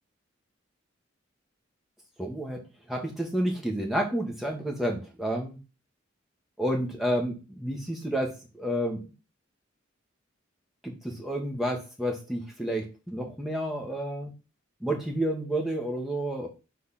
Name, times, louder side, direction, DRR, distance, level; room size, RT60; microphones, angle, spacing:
voice 1, 2.2-2.6 2.9-5.6 6.6-9.0 10.8-14.3 14.8-16.5, right 1 dB, ahead, 0 dB, 1.3 m, -30 dB
4.2 x 4.2 x 5.6 m, 0.31 s
head